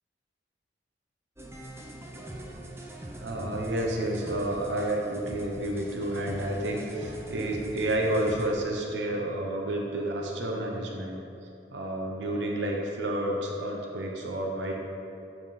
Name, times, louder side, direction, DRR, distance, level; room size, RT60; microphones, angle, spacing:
sound 1, 1.4-8.5, right 1 dB, 15° right, 0.6 m, -42 dB
voice 1, 3.2-11.2 11.7-14.7, right 1 dB, 85° right, 0 dB, 0.8 m, -30 dB
9.0 x 3.6 x 4.2 m, 2.7 s
head